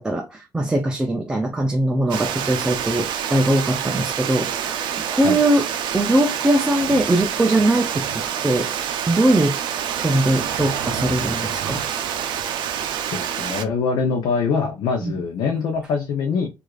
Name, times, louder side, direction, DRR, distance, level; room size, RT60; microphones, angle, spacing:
voice 1, 0.0-5.7 5.9-9.6 10.0-11.8 15.0-15.2, right 1 dB, 10° right, 0.4 m, -21 dB
Water, 2.1-13.6, right 9 dB, 85° right, 0.5 m, -27 dB
voice 2, 13.1-16.5, left 5 dB, 75° left, 0.6 m, -23 dB
4.6 x 2.5 x 2.4 m
cardioid pair, 180°, 8 cm